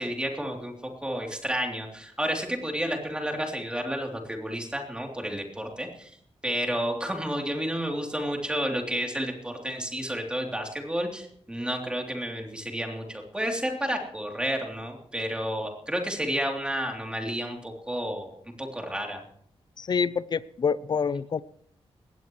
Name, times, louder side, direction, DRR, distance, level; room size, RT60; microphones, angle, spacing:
voice 1, 0.0-6.2 6.4-18.3 18.6-19.2, equal, 10° right, 2 dB, 3.3 m, -31 dB
voice 2, 19.8-21.4, left 6 dB, 45° left, 17 dB, 0.6 m, -27 dB
20.0 x 17.0 x 3.2 m, 0.65 s
wide cardioid pair, 135°, 10 cm